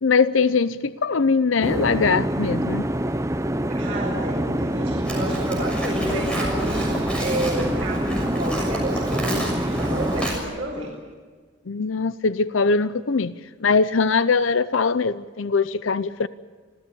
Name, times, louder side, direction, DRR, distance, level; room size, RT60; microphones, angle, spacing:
voice 1, 0.0-2.8 11.7-13.3 13.6-16.3, left 4 dB, 85° left, 15 dB, 0.7 m, -21 dB
sound 1, 1.6-10.3, right 1 dB, 15° right, 0.7 m, -26 dB
voice 2, 3.8-11.0, right 1 dB, 30° right, -5 dB, 5.4 m, -30 dB
Livestock farm animals working animals, 5.1-10.4, equal, 5° left, 6.6 m, -31 dB
26.0 x 16.5 x 8.7 m, 1.5 s
head